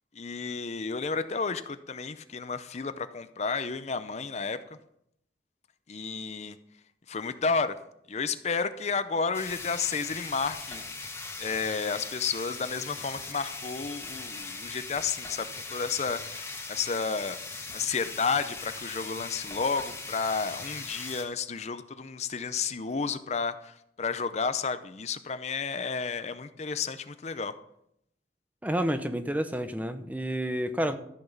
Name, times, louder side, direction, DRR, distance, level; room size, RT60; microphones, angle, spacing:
voice 1, 0.2-4.6 5.9-6.6 7.1-7.8 8.1-10.8 11.4-17.4 17.7-27.5, left 5 dB, 40° left, 11 dB, 0.5 m, -31 dB
sound 1, 9.3-21.2, left 3 dB, 15° left, 1.5 m, -39 dB
voice 2, 28.6-31.0, equal, 10° right, 9 dB, 0.7 m, -29 dB
14.0 x 6.0 x 7.0 m, 0.75 s
head